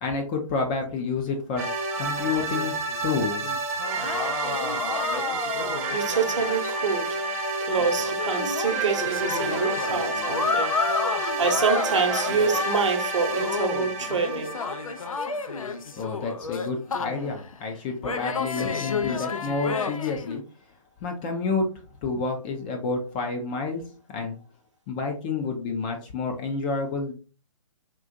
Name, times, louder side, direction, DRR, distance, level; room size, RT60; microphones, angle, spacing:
voice 1, 0.0-1.7 2.0-2.7 3.0-3.4 16.0-20.4 21.0-21.7 22.0-23.8 24.1-24.4 24.9-27.1, left 4 dB, 15° left, 0.3 m, -29 dB
sound 1, 1.6-15.8, right 3 dB, 25° right, 0.6 m, -30 dB
sound 2, 2.2-6.9 7.2-7.3 7.8-13.0 13.3-17.5 18.0-20.4, left 5 dB, 80° left, 0.4 m, -31 dB
voice 2, 5.9-7.2 7.6-14.5, right 5 dB, 60° right, 0.7 m, -27 dB
3.7 x 2.4 x 2.6 m
figure-of-eight pair, 135°, 17 cm